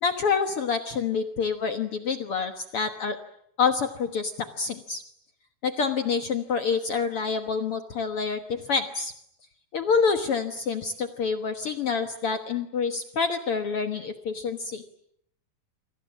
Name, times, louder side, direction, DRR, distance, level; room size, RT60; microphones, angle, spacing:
voice 1, 0.0-3.2 3.6-5.0 5.6-9.1 9.7-14.8, left 5 dB, 60° left, 7 dB, 1.5 m, -27 dB
29.5 x 25.5 x 7.3 m, 0.72 s
omnidirectional pair, 4.2 m